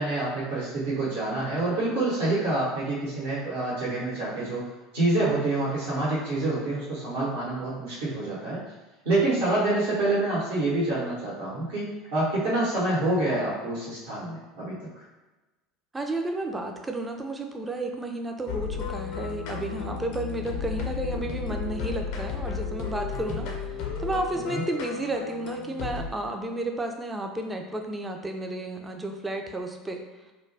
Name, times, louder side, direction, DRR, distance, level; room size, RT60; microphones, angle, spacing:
voice 1, 0.0-4.6 4.9-8.6 9.0-14.8 24.5-24.6, right 2 dB, 65° right, -7 dB, 0.9 m, -27 dB
voice 2, 15.9-23.5 24.0-30.0, right 2 dB, 15° right, 3 dB, 0.4 m, -32 dB
sound 1, 18.5-26.1, left 6 dB, 60° left, 0.4 m, -33 dB
2.2 x 2.1 x 3.2 m, 1.1 s
figure-of-eight pair, 70°, 0 cm